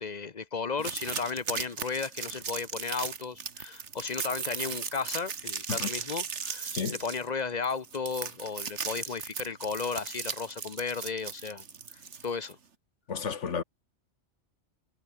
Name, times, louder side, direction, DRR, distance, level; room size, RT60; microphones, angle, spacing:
voice 1, 0.0-6.7 7.0-11.6 11.9-12.6, left 5 dB, 40° left, 0.9 m, -34 dB
sound 1, 0.8-12.5, right 6 dB, 75° right, 1.7 m, -37 dB
voice 2, 13.1-13.6, left 6 dB, 80° left, 1.7 m, -32 dB
omnidirectional pair, 1.2 m